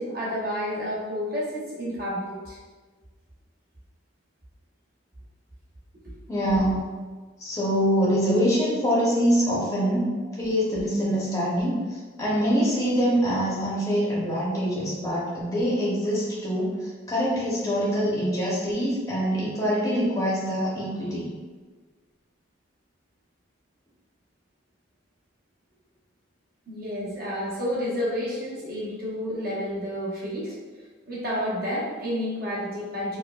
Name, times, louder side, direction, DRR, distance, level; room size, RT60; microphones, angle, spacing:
voice 1, 0.0-2.6 6.0-6.1 26.7-30.5 31.1-33.2, equal, 45° right, -6 dB, 0.9 m, -30 dB
voice 2, 6.3-6.9 7.4-10.1 10.4-21.4, equal, 15° left, -7 dB, 0.6 m, -24 dB
4.6 x 2.1 x 2.2 m, 1.4 s
head